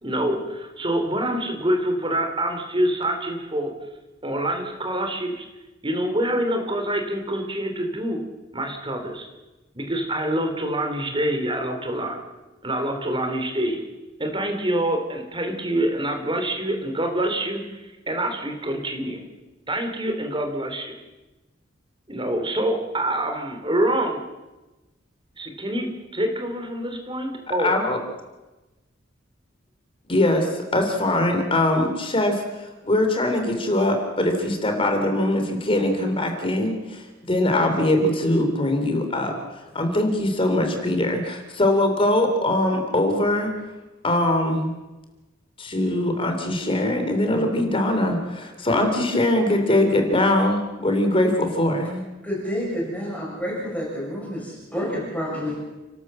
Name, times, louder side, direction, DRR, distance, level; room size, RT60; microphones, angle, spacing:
voice 1, 0.0-3.7 4.2-5.5 5.8-8.2 8.5-9.3 9.7-12.2 12.6-13.8 14.2-19.2 19.7-21.0 22.1-24.2 25.4-27.8, right 1 dB, 25° right, 4 dB, 3.3 m, -26 dB
voice 2, 27.6-28.0 30.1-39.3 39.7-43.5 44.0-44.7 45.6-52.1, left 1 dB, 30° left, 4 dB, 3.3 m, -22 dB
voice 3, 52.2-55.6, equal, 5° left, -5 dB, 7.3 m, -29 dB
29.5 x 12.5 x 7.6 m, 1.1 s
head